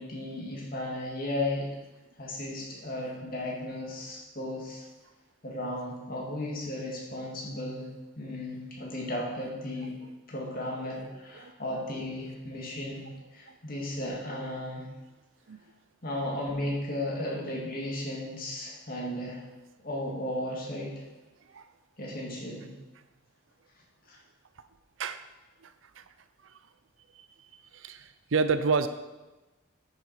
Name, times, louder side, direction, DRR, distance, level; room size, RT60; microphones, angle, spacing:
voice 1, 0.0-1.7 2.2-4.8 5.4-7.9 8.2-9.9 10.3-13.1 13.3-14.9 16.0-19.4 19.8-21.0 22.0-22.7 24.1-24.2, left 1 dB, 45° left, -3 dB, 2.3 m, -35 dB
voice 2, 25.6-26.0 26.4-26.6 27.1-27.3 27.7-28.9, right 4 dB, 80° right, 11 dB, 0.6 m, -30 dB
9.9 x 6.9 x 4.8 m, 1.1 s
head